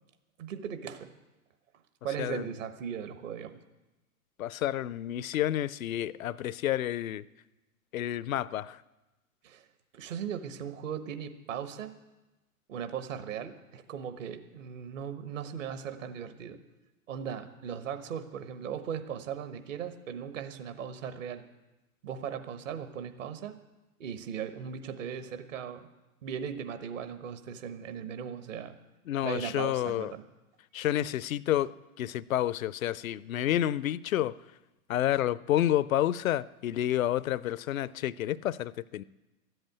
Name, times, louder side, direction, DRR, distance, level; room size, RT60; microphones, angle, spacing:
voice 1, 0.4-1.1 2.0-3.6 9.4-9.7 9.9-11.9 12.7-16.6 17.1-21.4 22.0-23.6 24.0-25.9 26.2-28.7 29.2-30.2, right 8 dB, 55° right, 10 dB, 1.3 m, -38 dB
voice 2, 4.4-7.2 7.9-8.8 29.1-30.1 30.7-34.3 34.9-39.0, left 12 dB, 65° left, 20 dB, 0.5 m, -29 dB
13.0 x 8.0 x 9.0 m, 1.0 s
figure-of-eight pair, 105°, 45 cm